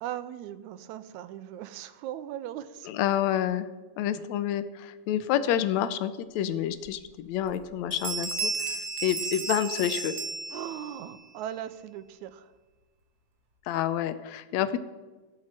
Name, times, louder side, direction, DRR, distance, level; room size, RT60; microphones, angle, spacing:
voice 1, 0.0-2.9 8.4-8.5 10.5-12.5, right 11 dB, 85° right, 13 dB, 2.0 m, -38 dB
voice 2, 2.9-3.7 4.0-8.8 9.0-10.1 13.7-14.8, left 11 dB, 75° left, 12 dB, 1.8 m, -28 dB
Bell, 6.8-6.9 7.4-7.7 7.9-11.1, right 4 dB, 55° right, 1.0 m, -33 dB
14.5 x 5.9 x 7.4 m, 1.3 s
omnidirectional pair, 3.3 m